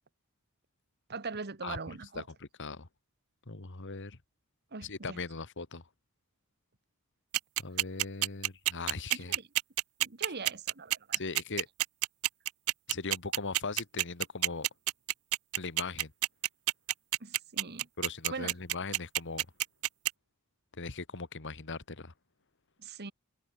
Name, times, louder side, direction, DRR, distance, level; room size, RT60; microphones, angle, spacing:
voice 1, 1.1-2.2 4.7-5.2 9.1-9.5 10.0-11.2 17.2-17.9 18.3-18.5 22.8-23.1, right 4 dB, 50° right, 1.5 m, -41 dB
voice 2, 2.1-2.9 3.5-4.2 4.8-5.8 7.6-9.4 11.1-11.7 12.9-14.7 15.5-16.1 18.0-19.5 20.8-22.1, left 4 dB, 55° left, 1.7 m, -39 dB
sound 1, 7.3-20.1, right 16 dB, 70° right, 0.6 m, -28 dB
head